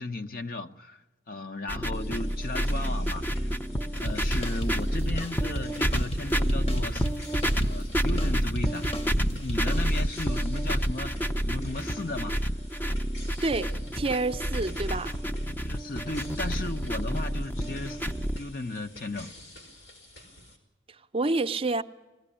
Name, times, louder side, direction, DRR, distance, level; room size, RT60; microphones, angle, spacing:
voice 1, 0.0-3.5 3.9-7.0 7.6-12.4 15.6-18.1 18.4-19.4, left 2 dB, 50° left, 0.9 m, -36 dB
sound 1, 1.7-18.4, equal, 10° left, 0.6 m, -29 dB
sound 2, 1.9-20.6, left 1 dB, 85° left, 5.1 m, -49 dB
sound 3, 4.1-10.4, equal, 35° left, 1.2 m, -35 dB
voice 2, 13.4-15.2 20.9-21.8, right 3 dB, 30° right, 0.6 m, -28 dB
21.0 x 16.0 x 10.0 m
head